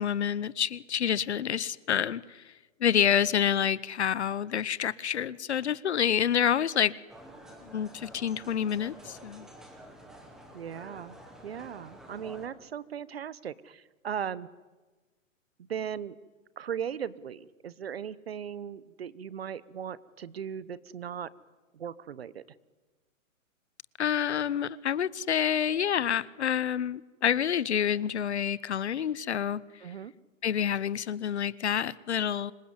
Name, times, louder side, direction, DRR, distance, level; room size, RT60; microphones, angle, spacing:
voice 1, 0.0-2.5 2.8-6.9 7.6-9.5 24.0-29.6 30.4-32.5, left 9 dB, 55° left, 0.9 m, -28 dB
sound 1, 7.1-12.5, right 1 dB, ahead, 1.0 m, -49 dB
voice 2, 10.5-11.2 11.4-14.5 15.6-16.2 16.6-21.3 21.7-22.4 29.8-30.1, right 8 dB, 50° right, 1.1 m, -38 dB
26.0 x 22.5 x 9.7 m
hypercardioid pair, 175°, 40 cm